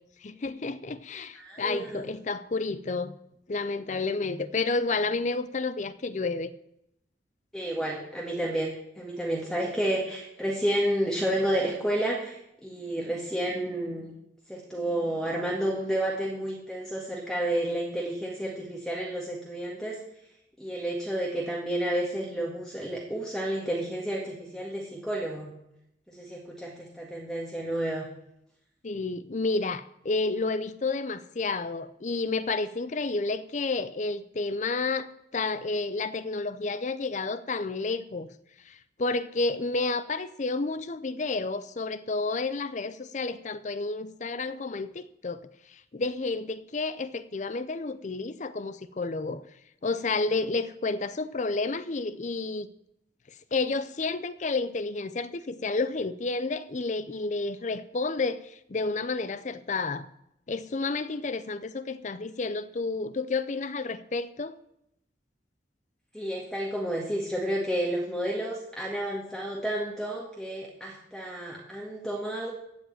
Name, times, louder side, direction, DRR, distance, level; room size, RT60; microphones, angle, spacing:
voice 1, 0.2-3.1 3.5-6.5 28.8-38.3 38.6-45.4 45.7-49.4 49.8-52.7 53.5-60.1 60.5-64.6, left 3 dB, 40° left, 0.5 m, -30 dB
voice 2, 1.3-2.0 7.5-8.7 9.0-14.1 14.5-20.0 20.6-25.5 26.1-28.1 66.1-72.5, right 1 dB, 5° left, 1.8 m, -31 dB
15.5 x 5.3 x 8.9 m
head